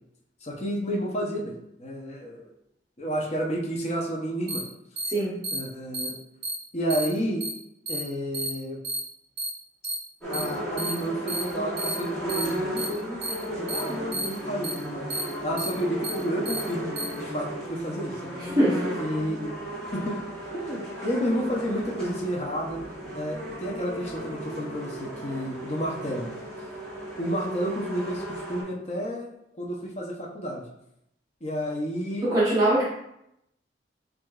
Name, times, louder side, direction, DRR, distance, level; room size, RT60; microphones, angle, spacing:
voice 1, 0.4-2.5 3.0-4.6 5.5-6.1 6.7-7.5 7.9-8.8 10.3-15.1 15.4-18.3 19.0-19.6 19.9-20.2 20.5-22.8 23.1-26.4 27.2-29.3 29.6-30.7 31.4-32.3, equal, 35° left, -1 dB, 0.7 m, -31 dB
sound 1, 4.5-4.6 5.0-5.1 5.4-5.6 5.9-6.1 6.4-6.5 6.9-7.0 7.4-7.5 7.9-8.0 8.3-8.5 8.8-9.0 9.4-9.5 9.8-9.9 10.3-10.4 10.8-10.9 11.3-11.4 11.8-11.9 12.3-12.4 12.8-12.9 13.2-13.3 13.7-13.8 14.1-14.3 14.6-14.7 15.1-15.2 15.6-15.7 16.0-16.1 16.4-16.6 17.0-17.1, right 2 dB, 55° right, 1.4 m, -31 dB
sound 2, 10.2-28.6, right 1 dB, 5° left, 1.4 m, -35 dB
voice 2, 32.2-32.8, right 1 dB, 20° right, -9 dB, 1.0 m, -21 dB
7.5 x 2.5 x 2.4 m, 0.79 s
head